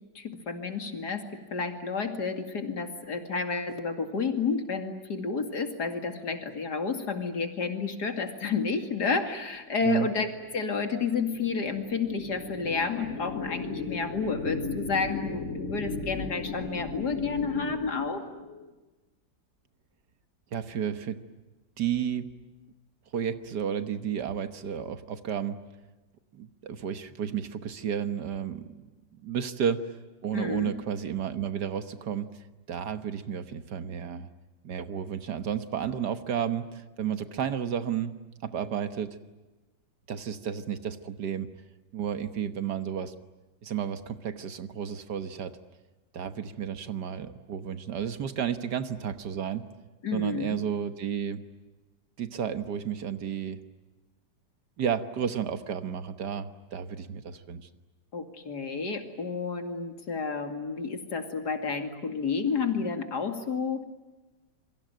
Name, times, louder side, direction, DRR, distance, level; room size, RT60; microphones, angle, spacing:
voice 1, 0.1-18.3 30.3-30.7 50.0-50.6 58.1-63.8, left 5 dB, 60° left, 6 dB, 2.9 m, -31 dB
sound 1, 10.2-18.7, left 4 dB, 40° left, 3.1 m, -37 dB
voice 2, 20.5-21.2 21.8-22.3 23.1-25.6 26.3-28.9 29.2-29.8 30.2-32.3 32.7-34.3 34.6-38.1 38.4-39.2 40.1-41.5 41.9-43.1 43.6-45.6 46.1-49.6 50.1-51.4 52.2-53.6 54.8-57.7, right 8 dB, 65° right, 11 dB, 1.7 m, -32 dB
28.0 x 23.5 x 9.1 m, 1.2 s
omnidirectional pair, 2.0 m